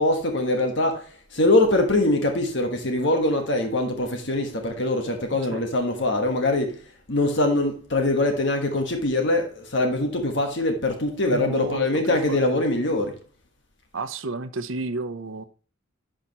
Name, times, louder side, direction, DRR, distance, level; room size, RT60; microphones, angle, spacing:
voice 1, 0.0-6.8 7.1-13.1, left 2 dB, 60° left, 1.3 m, -23 dB
voice 2, 11.3-12.7 13.9-15.4, right 3 dB, 75° right, 0.8 m, -32 dB
11.5 x 5.1 x 3.0 m
head